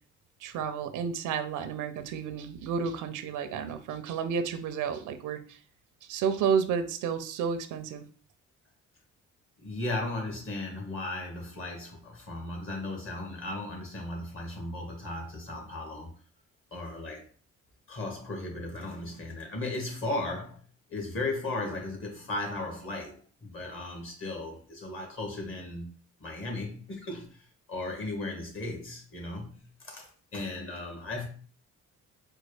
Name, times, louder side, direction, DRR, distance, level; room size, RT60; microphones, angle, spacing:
voice 1, 0.4-5.6 6.1-8.0, right 6 dB, 80° right, 10 dB, 0.5 m, -31 dB
voice 2, 9.6-16.1 16.7-17.2 17.9-20.6 20.9-25.9 26.2-27.3 27.7-31.2, left 2 dB, 45° left, 1 dB, 1.6 m, -36 dB
4.4 x 2.2 x 3.2 m, 0.42 s
cardioid pair, 90°, 30 cm